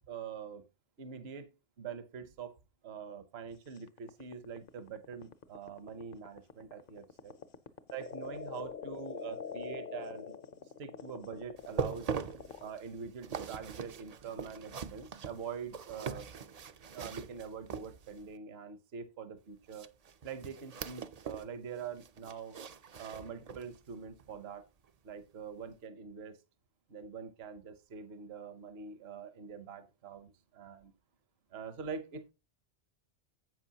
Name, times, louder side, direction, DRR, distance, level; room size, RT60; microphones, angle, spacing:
voice 1, 0.1-0.6 1.0-1.5 1.8-2.6 2.8-7.3 7.9-10.3 10.8-12.1 12.6-16.3 16.9-19.9 20.2-22.6 23.0-24.6 25.0-26.4 26.9-30.9 31.5-32.3, right 6 dB, 65° right, 10 dB, 1.1 m, -44 dB
sound 1, 3.8-12.7, left 7 dB, 55° left, 0.8 m, -44 dB
sound 2, 11.6-18.3 19.7-21.5 21.8-23.8 24.2-24.4 24.9-25.0, right 6 dB, 50° right, 0.5 m, -42 dB
11.0 x 8.0 x 2.8 m, 0.27 s
omnidirectional pair, 1.2 m